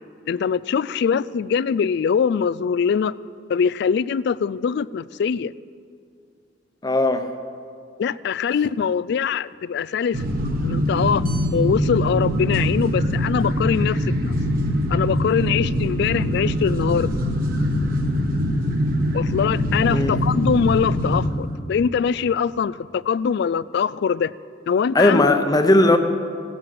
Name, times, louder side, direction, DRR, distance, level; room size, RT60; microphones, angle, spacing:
voice 1, 0.3-3.1 3.5-5.5 8.0-10.2 10.6-11.2 11.5-14.4 14.9-17.2 19.1-24.3 24.7-25.2, left 6 dB, 60° left, 19 dB, 0.3 m, -22 dB
voice 2, 6.8-7.2 19.9-20.2 24.9-26.0, left 2 dB, 20° left, 7 dB, 0.8 m, -17 dB
sound 1, 10.1-21.3, equal, 50° right, 1.4 m, -23 dB
17.5 x 7.5 x 7.7 m, 2.3 s
head